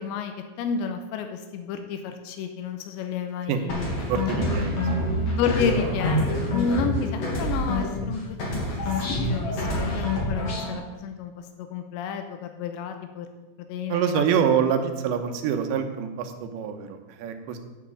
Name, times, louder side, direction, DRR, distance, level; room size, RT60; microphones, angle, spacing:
voice 1, 0.0-3.8 5.3-8.6 8.9-13.3 13.7-14.2, left 6 dB, 90° left, 6 dB, 3.1 m, -31 dB
sound 1, 3.7-8.1 8.4-10.7, left 1 dB, 40° left, 3.5 m, -26 dB
voice 2, 4.0-5.0 13.9-17.6, right 7 dB, 85° right, 6 dB, 3.3 m, -26 dB
8.6 x 8.0 x 8.4 m, 1.2 s
omnidirectional pair, 5.1 m